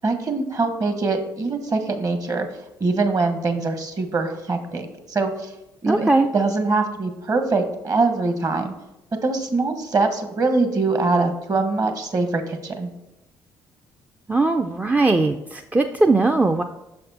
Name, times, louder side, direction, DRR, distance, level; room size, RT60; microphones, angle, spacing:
voice 1, 0.0-2.5 2.8-5.5 5.8-8.7 9.2-12.9, right 3 dB, 35° right, 7 dB, 1.1 m, -23 dB
voice 2, 5.9-6.3 14.3-16.6, right 3 dB, 15° right, 4 dB, 0.4 m, -19 dB
6.5 x 4.3 x 4.1 m, 0.94 s
hypercardioid pair, 50°, 10 cm